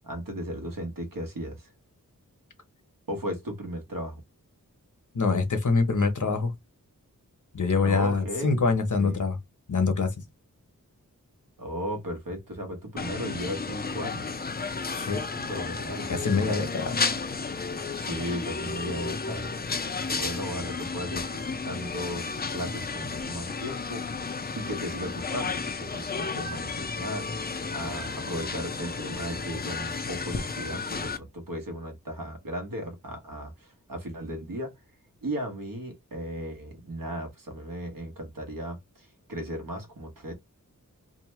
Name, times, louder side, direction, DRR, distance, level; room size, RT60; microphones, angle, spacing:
voice 1, 0.0-1.7 3.1-4.2 7.8-8.6 9.0-9.3 11.6-14.3 15.3-16.6 17.9-19.6 20.1-24.0 24.5-27.3 27.7-34.7 35.2-40.3, equal, 75° right, 1.1 m, -36 dB
voice 2, 5.1-6.5 7.5-9.4 9.7-10.1 14.9-15.2 16.1-17.0, left 4 dB, 60° left, 0.9 m, -25 dB
sound 1, 13.0-31.2, left 4 dB, 30° left, 0.4 m, -33 dB
2.9 x 2.1 x 3.1 m
wide cardioid pair, 60°, 34 cm